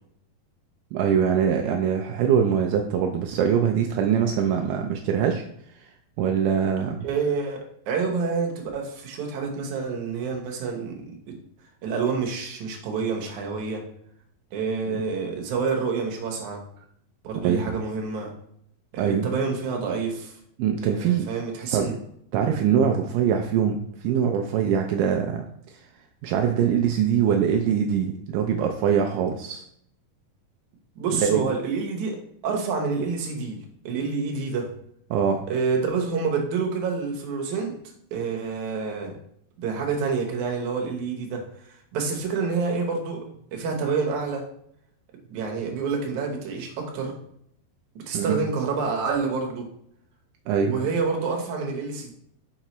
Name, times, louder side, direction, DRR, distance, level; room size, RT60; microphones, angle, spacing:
voice 1, 0.9-5.5 5.8-5.9 6.2-7.0 14.9-15.0 17.4-17.6 19.0-19.3 20.6-21.3 21.7-22.0 22.3-25.5 26.2-29.6 31.1-31.5 35.1-35.4 48.1-48.4 50.5-50.7, right 8 dB, 85° right, 3 dB, 1.9 m, -23 dB
voice 2, 7.0-11.3 11.8-13.8 14.5-16.6 17.2-18.3 18.9-20.4 20.8-22.0 31.0-33.6 33.8-34.7 35.5-37.7 38.1-39.1 39.6-43.2 43.5-44.5 45.3-47.1 48.0-49.7 50.6-52.1, right 5 dB, 65° right, 1 dB, 2.1 m, -28 dB
5.8 x 5.4 x 3.0 m, 0.70 s
omnidirectional pair, 4.3 m